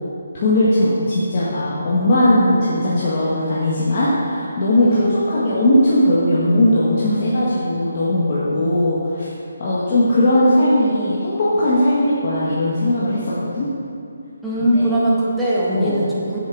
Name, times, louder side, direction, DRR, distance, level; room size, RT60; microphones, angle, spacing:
voice 1, 0.3-9.3 9.6-13.7 14.6-14.9 15.7-15.9, left 1 dB, 40° left, -9 dB, 1.5 m, -18 dB
voice 2, 4.8-5.1 14.4-16.4, right 1 dB, ahead, -10 dB, 1.5 m, -20 dB
7.6 x 6.9 x 4.8 m, 2.6 s
figure-of-eight pair, 155°, 0 cm